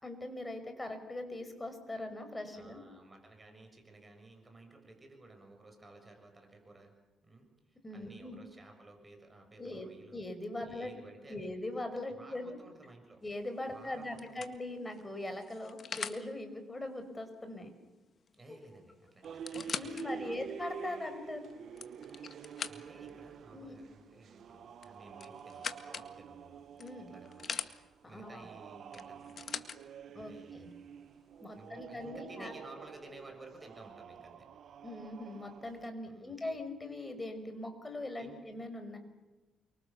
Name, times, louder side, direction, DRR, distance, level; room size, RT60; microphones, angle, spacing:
voice 1, 0.0-2.8 7.8-8.4 9.6-9.9 10.1-10.9 11.3-12.6 13.2-17.7 18.5-18.6 19.5-21.5 23.5-23.8 26.8-27.1 28.0-28.5 30.2-30.7 31.4-32.5 34.8-39.0, left 1 dB, 20° left, 8 dB, 5.5 m, -41 dB
voice 2, 2.5-6.9 7.2-10.2 10.6-11.5 12.1-13.2 13.7-14.4 18.3-20.5 22.7-26.6 27.1-27.6 28.1-29.4 30.1-30.7 31.5-34.5 36.1-36.6 38.2-38.5, right 2 dB, 20° right, 4 dB, 6.6 m, -55 dB
sound 1, 13.3-13.6 14.2-16.2 18.3-18.4 18.6-18.7 19.2-20.1 20.7-20.8 21.5-23.1 24.8-26.1 26.8-27.7 28.9-29.8 30.7-30.8, left 6 dB, 50° left, 1.8 m, -42 dB
sound 2, 19.2-35.9, right 8 dB, 65° right, 1.2 m, -48 dB
29.0 x 24.5 x 7.2 m, 1.1 s
cardioid pair, 90°, 0 cm